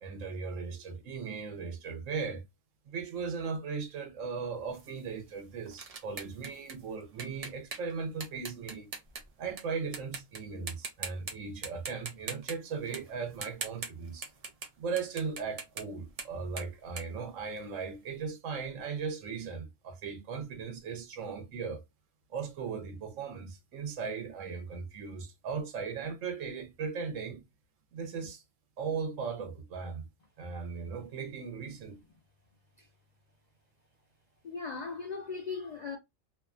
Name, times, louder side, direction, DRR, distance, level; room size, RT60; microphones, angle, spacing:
voice 1, 0.0-2.4 2.9-8.9 9.4-14.3 14.8-21.8 22.3-27.4 27.9-28.4 28.8-30.0 30.4-32.0, right 5 dB, 80° right, 1.1 m, -37 dB
sound 1, 4.7-9.6 9.9-10.4 10.7-11.3 11.6-14.7 15.0-18.0, right 4 dB, 45° right, 0.4 m, -42 dB
voice 2, 34.4-36.0, left 4 dB, 80° left, 0.3 m, -38 dB
2.7 x 2.2 x 2.4 m
omnidirectional pair, 1.3 m